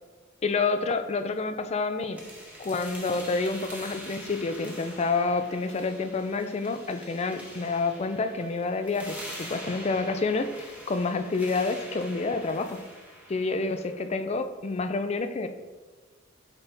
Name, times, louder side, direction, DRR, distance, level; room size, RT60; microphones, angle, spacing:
voice 1, 0.4-2.3 2.6-12.9 13.3-15.5, left 3 dB, 35° left, 8 dB, 0.4 m, -28 dB
sound 1, 2.1-14.1, equal, 5° right, 1.0 m, -44 dB
8.1 x 4.1 x 3.4 m, 1.3 s
head